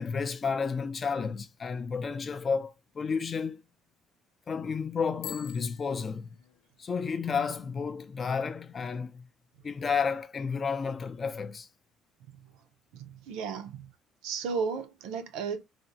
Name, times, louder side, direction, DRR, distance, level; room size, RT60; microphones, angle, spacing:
voice 1, 0.0-3.6 4.5-6.3 6.8-9.3 9.6-11.7, left 5 dB, 25° left, 0.4 m, -31 dB
Bicycle bell, 5.1-6.9, left 11 dB, 85° left, 0.5 m, -46 dB
voice 2, 12.9-13.9 14.2-15.6, right 5 dB, 85° right, 0.5 m, -34 dB
3.3 x 2.0 x 2.6 m
cardioid pair, 140°, 0 cm